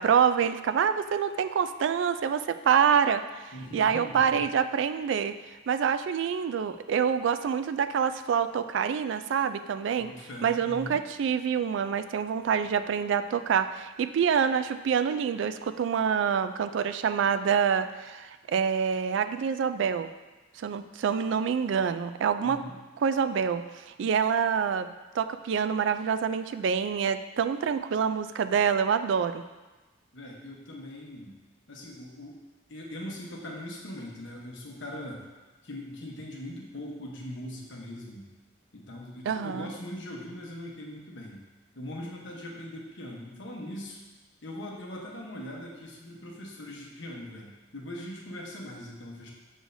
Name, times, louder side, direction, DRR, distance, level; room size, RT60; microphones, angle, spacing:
voice 1, 0.0-3.4 3.7-5.3 5.7-10.1 10.4-20.1 20.6-22.6 23.0-29.4 39.3-39.7, right 7 dB, 70° right, 10 dB, 0.3 m, -26 dB
voice 2, 3.5-4.5 10.0-11.0 22.4-22.8 30.1-31.3 31.7-32.4 32.7-35.3 35.6-38.3 38.7-41.4 41.7-44.0 44.4-49.3, left 1 dB, 70° left, -2 dB, 1.0 m, -41 dB
6.3 x 6.3 x 2.6 m, 1.2 s
head